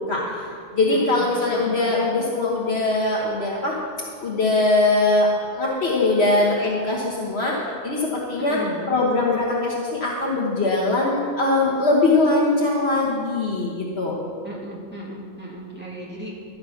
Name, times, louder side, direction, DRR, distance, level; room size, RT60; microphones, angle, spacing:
voice 1, 0.1-3.8 4.2-7.5 7.8-8.6 8.9-14.2, left 2 dB, 65° left, -4 dB, 1.6 m, -21 dB
voice 2, 0.8-2.1 8.4-8.9 14.4-16.3, right 1 dB, 10° right, -5 dB, 2.4 m, -36 dB
12.0 x 8.7 x 5.8 m, 2.3 s
omnidirectional pair, 1.2 m